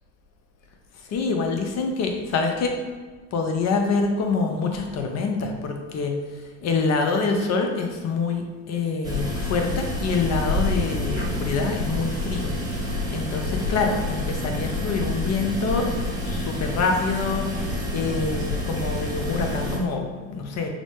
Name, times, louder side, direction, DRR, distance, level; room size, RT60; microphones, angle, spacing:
voice 1, 1.1-2.8 3.3-6.2 6.6-12.5 12.9-15.9 16.2-20.7, left 4 dB, 40° left, 3 dB, 0.8 m, -26 dB
sound 1, 9.0-19.8, left 1 dB, 10° right, 1.0 m, -28 dB
6.1 x 2.1 x 3.3 m, 1.4 s
hypercardioid pair, 80°, 39 cm